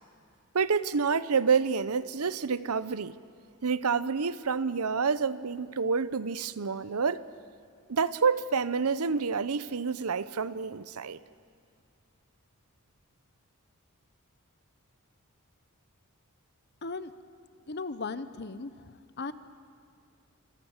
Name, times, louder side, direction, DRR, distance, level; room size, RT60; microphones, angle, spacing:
voice 1, 0.5-3.1 3.6-7.2 7.9-11.2, right 5 dB, 80° right, 0.8 m, -28 dB
voice 2, 16.8-17.1 17.7-18.9 19.2-19.3, left 3 dB, 50° left, 1.0 m, -36 dB
27.5 x 26.5 x 7.4 m
head